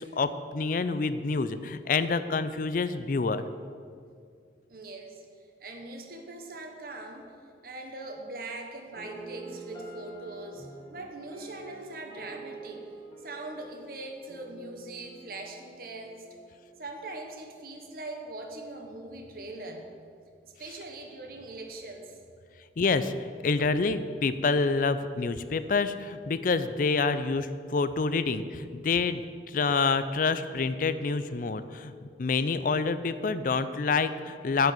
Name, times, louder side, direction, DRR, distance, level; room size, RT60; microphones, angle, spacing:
voice 1, 0.0-3.4 22.8-23.1 23.4-31.9 32.2-34.7, left 4 dB, 45° left, 12 dB, 0.4 m, -27 dB
voice 2, 4.7-5.2 5.6-7.3 7.6-12.9 13.2-16.4 16.8-19.9 20.4-22.2, right 2 dB, 50° right, 3 dB, 1.1 m, -41 dB
sound 1, 8.9-16.9, right 3 dB, 25° left, 1.7 m, -47 dB
10.0 x 4.8 x 7.8 m, 2.2 s
head